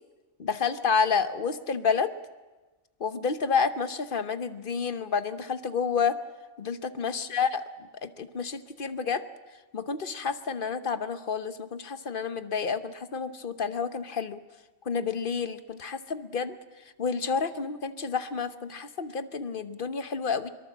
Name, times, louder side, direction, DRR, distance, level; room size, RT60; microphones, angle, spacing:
voice 1, 0.4-2.1 3.0-6.2 6.6-7.6 8.0-9.2 9.7-14.4 14.9-16.6 17.0-20.5, left 5 dB, 45° left, 11 dB, 1.1 m, -29 dB
23.5 x 22.5 x 7.3 m, 1.2 s
omnidirectional pair, 1.3 m